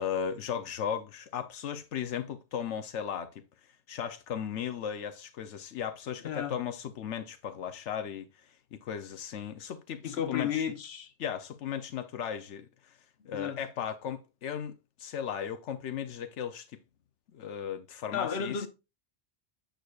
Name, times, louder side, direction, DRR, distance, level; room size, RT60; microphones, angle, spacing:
voice 1, 0.0-3.3 3.9-8.3 8.7-10.6 11.2-12.9 13.3-14.7 15.0-16.8 17.3-18.7, left 8 dB, 90° left, 1.1 m, -36 dB
voice 2, 6.2-6.6 10.0-11.1 13.3-13.6 18.1-18.7, left 7 dB, 65° left, 1.3 m, -33 dB
9.1 x 6.4 x 2.4 m
omnidirectional pair, 1.2 m